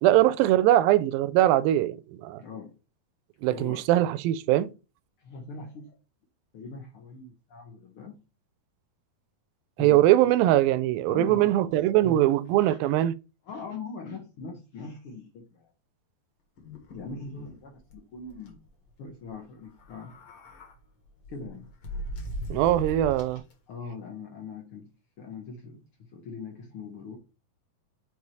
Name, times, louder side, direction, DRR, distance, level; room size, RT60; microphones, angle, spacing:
voice 1, 0.0-2.4 3.4-4.7 9.8-13.1 22.5-23.4, right 14 dB, 85° right, 2.3 m, -22 dB
voice 2, 2.4-2.7 3.5-3.8 5.2-5.9 6.5-8.2 9.8-10.3 11.1-11.6 11.9-12.8 13.4-15.7 16.9-18.6 19.0-20.1 21.3-21.7 23.7-24.9 25.2-27.2, left 4 dB, 70° left, 1.3 m, -41 dB
sound 1, 16.6-17.6 17.9-18.0 18.3-18.5 19.7-20.7 21.2-23.5, equal, 45° left, 2.1 m, -39 dB
5.5 x 4.7 x 4.7 m
omnidirectional pair, 4.1 m